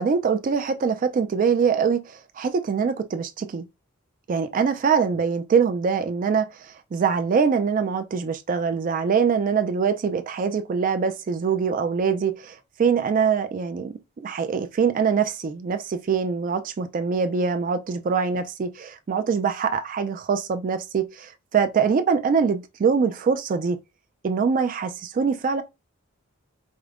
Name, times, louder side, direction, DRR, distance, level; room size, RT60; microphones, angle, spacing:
voice 1, 0.0-3.7 4.3-23.8 24.2-25.6, right 6 dB, 40° right, 0.3 m, -23 dB
4.9 x 2.1 x 2.4 m
head